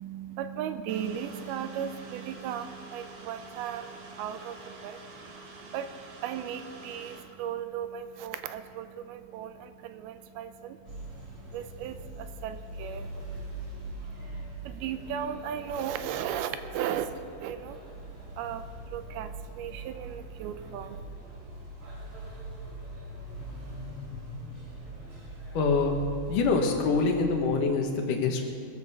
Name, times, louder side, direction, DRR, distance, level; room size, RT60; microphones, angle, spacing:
voice 1, 0.0-21.1, right 9 dB, 80° right, 10 dB, 2.5 m, -37 dB
sound 1, 0.9-7.2, right 2 dB, 60° right, 2.6 m, -48 dB
sound 2, 10.8-27.6, right 2 dB, 35° right, 3.3 m, -42 dB
voice 2, 25.5-25.9 26.3-28.4, left 4 dB, 65° left, 3 dB, 2.5 m, -25 dB
22.0 x 8.0 x 6.7 m, 2.3 s
omnidirectional pair, 4.7 m